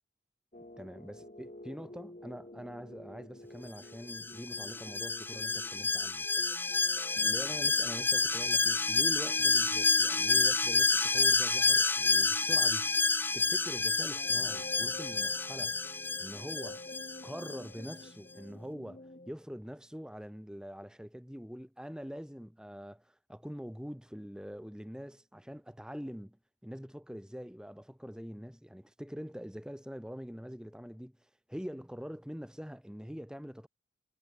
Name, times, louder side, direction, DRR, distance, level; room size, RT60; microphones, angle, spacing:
sound 1, 0.5-19.3, left 1 dB, 40° left, 2.0 m, -50 dB
voice 1, 0.8-6.6 7.2-12.9 13.3-15.8 16.2-16.8 17.2-26.4 26.6-31.2 31.5-33.7, equal, 5° right, 1.2 m, -44 dB
Alarm, 4.1-17.6 17.9-18.0, left 3 dB, 10° left, 0.6 m, -29 dB
head